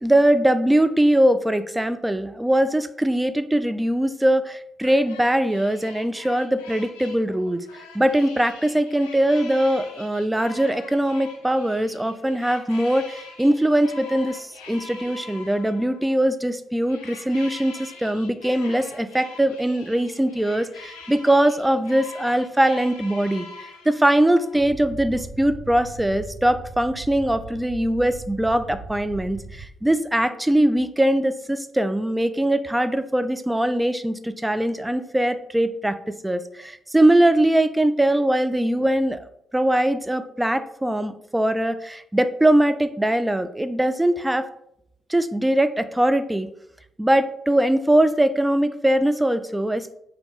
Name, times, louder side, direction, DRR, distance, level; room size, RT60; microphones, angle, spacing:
voice 1, 0.0-7.7 7.9-23.5 23.9-36.0 36.2-44.5 45.1-46.5 47.0-49.9, right 1 dB, 10° right, 11 dB, 0.3 m, -21 dB
sound 1, 4.8-16.2 16.8-24.6, left 4 dB, 85° left, 0.5 m, -44 dB
sound 2, 24.5-29.6, right 3 dB, 60° right, 1.6 m, -39 dB
3.6 x 2.8 x 3.7 m, 0.76 s
hypercardioid pair, 40°, 0 cm